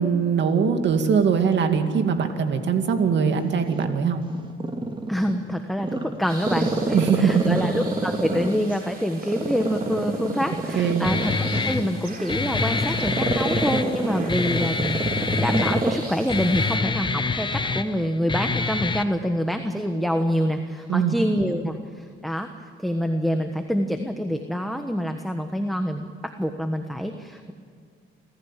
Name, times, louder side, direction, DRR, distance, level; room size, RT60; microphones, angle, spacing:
voice 1, 0.0-4.2 6.9-7.6 10.8-11.1 20.9-21.2 21.4-21.6, right 6 dB, 65° right, 6 dB, 2.4 m, -21 dB
Growling, 3.6-5.4 5.8-8.8 9.2-16.0 16.4-16.5, right 3 dB, 25° right, 2.2 m, -27 dB
voice 2, 5.1-11.3 11.6-15.0 15.3-22.5 22.8-27.5, equal, ahead, 5 dB, 1.4 m, -26 dB
sound 1, 6.3-16.8, right 4 dB, 50° right, 4.0 m, -43 dB
Guitar, 11.0-19.0, left 4 dB, 25° left, 1.1 m, -26 dB
26.5 x 14.5 x 7.6 m, 2.2 s
cardioid pair, 90°, 20 cm